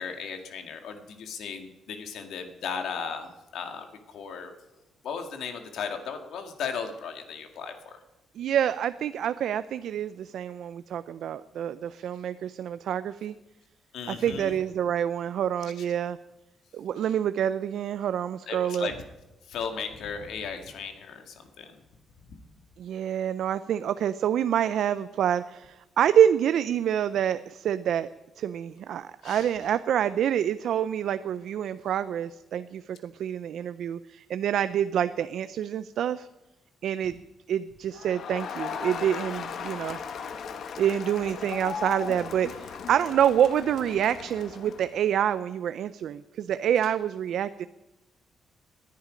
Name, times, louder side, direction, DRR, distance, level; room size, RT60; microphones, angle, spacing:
voice 1, 0.0-4.6 5.0-8.0 13.9-14.6 15.8-15.9 17.0-17.1 18.5-19.0 19.4-21.8 22.3-22.4 29.2-29.6, left 6 dB, 75° left, 6 dB, 1.9 m, -36 dB
voice 2, 8.4-13.3 14.2-16.2 16.7-18.9 22.8-28.1 28.4-36.3 36.8-37.2 37.5-40.0 40.8-47.7, right 9 dB, 65° right, 13 dB, 0.4 m, -27 dB
Crowd, 37.9-45.0, left 6 dB, 55° left, 1.0 m, -37 dB
19.5 x 10.5 x 5.1 m, 1.0 s
cardioid pair, 145°, 0 cm